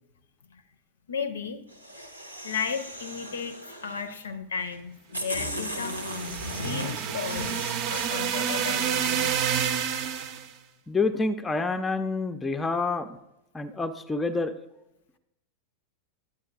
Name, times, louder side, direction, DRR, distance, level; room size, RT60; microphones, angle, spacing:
voice 1, 1.1-1.6 2.0-2.1 2.4-6.0 6.5-7.6 7.9-9.4, left 6 dB, 70° left, 11 dB, 0.5 m, -34 dB
sound 1, 1.7-4.1 4.7-4.8 5.1-8.1, equal, 85° right, 0.7 m, -36 dB
sound 2, 5.6-10.5, right 8 dB, 45° right, 0.5 m, -29 dB
voice 2, 10.9-13.1 13.5-14.5, left 3 dB, 10° left, 8 dB, 0.4 m, -27 dB
9.4 x 8.5 x 2.3 m, 0.91 s
figure-of-eight pair, 90°, 0 cm